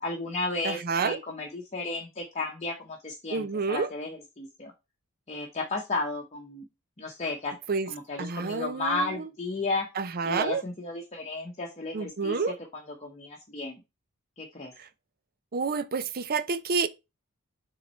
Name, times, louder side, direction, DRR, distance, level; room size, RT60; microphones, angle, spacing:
voice 1, 0.0-4.7 5.3-6.7 7.0-7.5 7.9-9.9 10.2-12.5 13.0-13.8 14.4-14.7, left 3 dB, 30° left, 0.9 m, -33 dB
voice 2, 0.6-1.2 3.3-3.9 7.7-7.9 8.2-9.3 10.0-10.6 11.9-12.5 14.8-14.9 15.5-16.9, right 4 dB, 40° right, 0.5 m, -29 dB
7.1 x 3.9 x 4.3 m
head